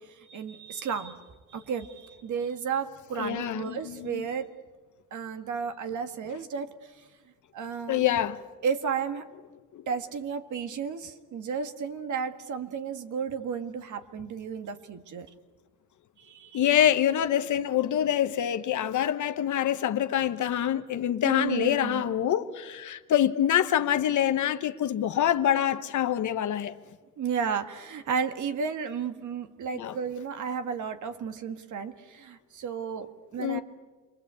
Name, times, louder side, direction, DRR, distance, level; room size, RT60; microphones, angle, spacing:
voice 1, 0.3-1.2 1.5-4.5 5.1-6.7 7.5-8.0 8.6-9.3 9.9-15.3 16.2-16.6 21.2-22.0 27.2-33.6, right 6 dB, 60° right, 1.8 m, -33 dB
voice 2, 3.2-4.3 7.9-8.4 9.7-9.8 16.5-26.8 29.7-30.0 33.4-33.6, left 10 dB, 60° left, 1.1 m, -26 dB
28.5 x 23.0 x 8.2 m
cardioid pair, 165°, 33 cm